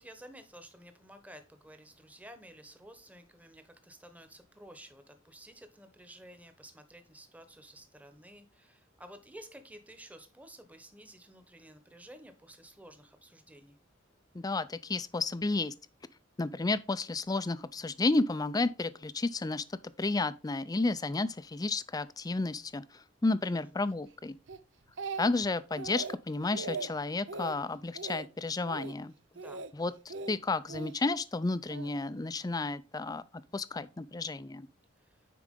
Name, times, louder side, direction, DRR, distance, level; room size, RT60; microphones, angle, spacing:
voice 1, 0.0-13.8 23.4-23.8 29.4-29.6 35.0-35.3, right 1 dB, 10° right, 1.1 m, -53 dB
voice 2, 14.3-15.7 16.4-19.6 20.0-24.4 25.2-29.1 29.7-33.2 33.5-34.7, left 3 dB, 20° left, 0.4 m, -32 dB
Speech, 24.5-25.5 25.8-26.2 26.5-26.9 27.3-27.6 27.9-28.3 28.6-28.9 29.4-29.7 30.1-30.9 31.7-31.9, right 4 dB, 65° right, 0.6 m, -40 dB
9.7 x 4.7 x 3.7 m
head